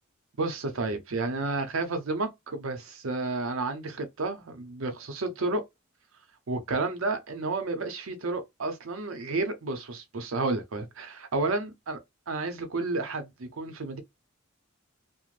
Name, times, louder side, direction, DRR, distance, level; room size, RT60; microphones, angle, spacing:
voice 1, 0.4-5.6 6.5-12.0 12.3-14.0, right 3 dB, 70° right, 0.6 m, -31 dB
2.5 x 2.0 x 3.1 m
head